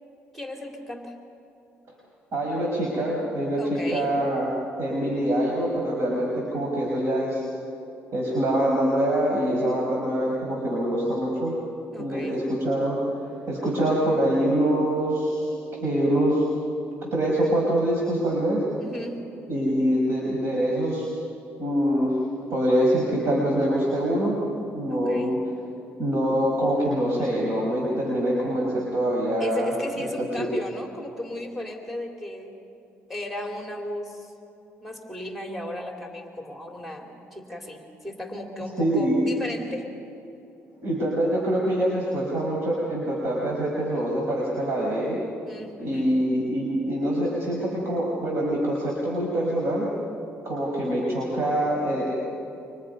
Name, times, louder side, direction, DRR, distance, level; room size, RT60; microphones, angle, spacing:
voice 1, 0.3-1.1 3.6-4.1 11.9-12.4 18.8-19.2 24.9-25.3 29.4-32.6 33.1-34.3 34.8-39.8 45.5-46.1, left 1 dB, 5° right, 1 dB, 3.2 m, -35 dB
voice 2, 2.3-4.5 4.8-7.4 8.1-11.6 12.0-13.0 13.5-15.5 15.8-16.4 17.0-18.6 19.5-21.1 21.6-22.2 22.5-24.4 24.7-25.4 26.0-29.7 30.0-30.1 30.4-30.5 38.8-39.2 40.8-45.2 45.8-49.9 50.4-52.1, right 1 dB, 55° right, -3 dB, 5.5 m, -24 dB
29.5 x 26.0 x 5.5 m, 2.9 s
cardioid pair, 100°, 5 cm